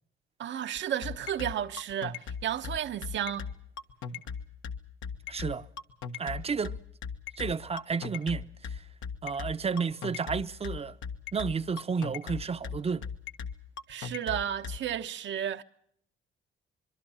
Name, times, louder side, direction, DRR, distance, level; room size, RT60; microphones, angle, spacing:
voice 1, 0.4-3.5 13.9-15.6, right 10 dB, 65° right, 1.1 m, -33 dB
sound 1, 0.8-14.8, left 6 dB, 80° left, 1.5 m, -37 dB
voice 2, 5.3-5.7 6.2-6.8 7.4-8.8 9.2-11.0 11.3-13.0, right 5 dB, 30° right, 0.8 m, -32 dB
25.5 x 22.5 x 5.6 m
cardioid pair, 90°, 20 cm